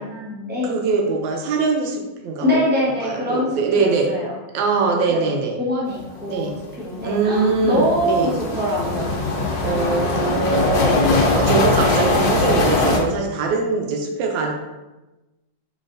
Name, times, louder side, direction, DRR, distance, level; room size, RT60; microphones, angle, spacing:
voice 1, 0.0-0.7 2.4-4.3 5.1-6.5 6.8-9.2, equal, 15° right, -6 dB, 0.4 m, -24 dB
voice 2, 0.7-2.5 3.0-4.1 4.5-5.6 6.3-6.5 7.0-8.3 9.6-14.5, right 4 dB, 85° right, 2 dB, 1.3 m, -22 dB
sound 1, 6.2-6.3 6.6-6.7 7.0-13.0, left 2 dB, 80° left, 1.4 m, -21 dB
3.9 x 3.3 x 2.6 m, 1.1 s
omnidirectional pair, 2.0 m